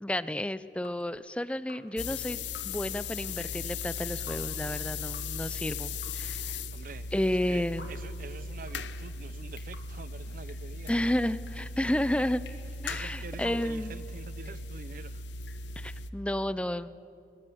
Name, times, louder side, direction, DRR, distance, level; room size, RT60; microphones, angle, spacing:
voice 1, 0.0-6.6 7.1-7.9 10.9-12.4 12.8-13.9 15.8-17.0, left 1 dB, 5° left, 0.4 m, -31 dB
Drip, 0.6-16.1, left 3 dB, 60° left, 2.0 m, -56 dB
sound 1, 2.0-16.1, left 4 dB, 80° left, 0.7 m, -38 dB
voice 2, 6.7-11.1 12.7-15.2, right 4 dB, 45° right, 0.5 m, -47 dB
21.5 x 20.0 x 7.8 m
head